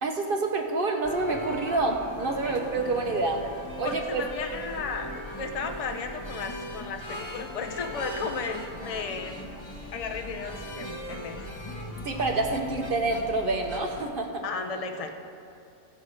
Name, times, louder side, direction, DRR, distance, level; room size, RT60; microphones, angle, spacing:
voice 1, 0.0-3.5 3.8-4.2 12.0-14.4, right 3 dB, 45° right, 3 dB, 0.8 m, -27 dB
sound 1, 1.0-14.0, left 1 dB, 20° left, 0.9 m, -39 dB
voice 2, 2.4-3.1 3.8-9.5 9.9-11.4 14.4-15.1, left 5 dB, 50° left, 4 dB, 0.4 m, -35 dB
15.5 x 5.5 x 6.4 m, 2.7 s
omnidirectional pair, 1.8 m